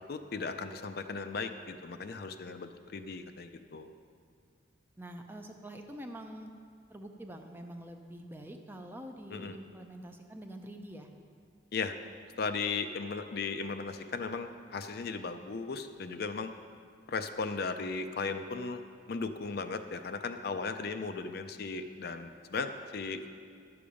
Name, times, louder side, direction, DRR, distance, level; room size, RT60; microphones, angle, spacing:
voice 1, 0.0-3.9 9.3-9.6 11.7-12.0 12.4-16.5 17.1-18.8 19.1-23.3, left 4 dB, 50° left, 8 dB, 0.4 m, -36 dB
voice 2, 5.0-6.5 6.9-11.1, right 1 dB, 10° right, 4 dB, 0.5 m, -46 dB
11.5 x 6.9 x 5.0 m, 2.3 s
head